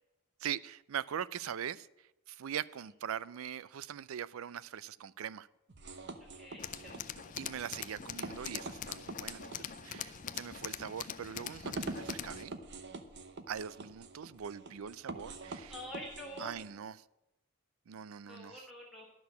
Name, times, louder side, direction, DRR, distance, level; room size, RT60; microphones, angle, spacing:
voice 1, 0.4-1.9 2.3-5.5 7.4-9.4 9.8-12.5 13.5-15.7 16.4-17.0 17.9-18.6, right 9 dB, 75° right, 0.4 m, -41 dB
sound 1, 5.7-16.7, right 3 dB, 55° right, 0.9 m, -46 dB
voice 2, 6.3-7.1 15.7-16.7 18.3-19.0, left 1 dB, ahead, 1.6 m, -47 dB
Tools, 6.6-12.4, left 9 dB, 35° left, 0.4 m, -43 dB
12.0 x 6.2 x 8.3 m
head